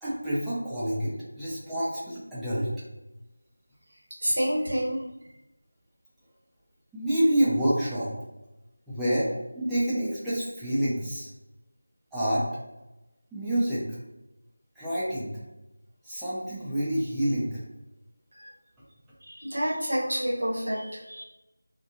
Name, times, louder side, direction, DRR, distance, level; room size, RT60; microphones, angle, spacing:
voice 1, 0.0-2.7 6.9-8.1 8.9-9.3 9.5-11.3 12.1-12.4 13.3-13.8 14.8-15.3 16.0-17.6, right 1 dB, 5° right, -13 dB, 0.6 m, -27 dB
voice 2, 4.2-5.0 18.3-18.5 19.2-21.2, equal, 75° right, -7 dB, 1.2 m, -28 dB
2.8 x 2.3 x 2.5 m, 0.97 s
figure-of-eight pair, 170°, 0 cm